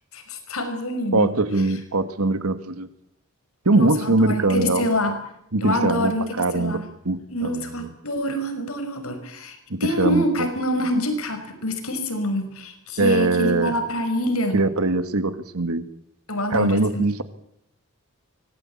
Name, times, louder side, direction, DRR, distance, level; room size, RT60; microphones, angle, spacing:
voice 1, 0.1-1.3 3.7-5.2 5.6-6.9 7.3-14.6 16.3-17.1, left 1 dB, 70° left, 7 dB, 5.5 m, -26 dB
voice 2, 1.1-2.9 3.7-4.8 5.5-6.8 7.1-7.9 9.7-10.5 13.0-13.7 14.5-15.9 16.5-17.2, right 2 dB, 80° right, 11 dB, 1.8 m, -22 dB
25.0 x 19.0 x 8.6 m, 0.78 s
head